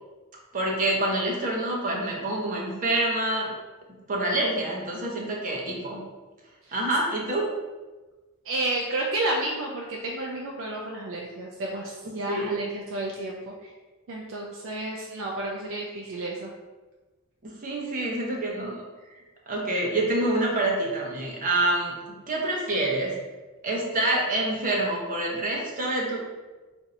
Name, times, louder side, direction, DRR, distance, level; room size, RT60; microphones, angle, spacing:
voice 1, 0.5-3.5 4.1-6.0 6.7-7.5 12.3-12.5 17.4-18.8 19.5-21.9 22.3-23.1 23.6-26.2, right 1 dB, 35° right, -2 dB, 0.7 m, -26 dB
voice 2, 8.5-13.7 14.1-16.5, right 2 dB, 60° right, -1 dB, 0.4 m, -31 dB
2.6 x 2.6 x 4.2 m, 1.2 s
head